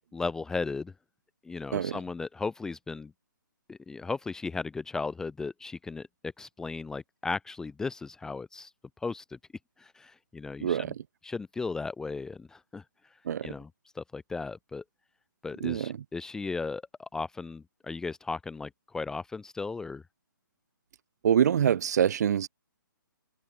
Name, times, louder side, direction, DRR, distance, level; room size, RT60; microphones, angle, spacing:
voice 1, 0.1-0.9 1.4-3.1 3.7-8.7 9.0-9.4 9.8-10.9 11.2-12.8 13.4-13.7 13.9-14.8 15.4-20.0, left 4 dB, 5° left, 0.6 m, -36 dB
voice 2, 10.6-11.0 13.2-13.5 15.6-16.0 21.2-22.5, right 9 dB, 50° right, 1.2 m, -25 dB
hypercardioid pair, 145°, 11 cm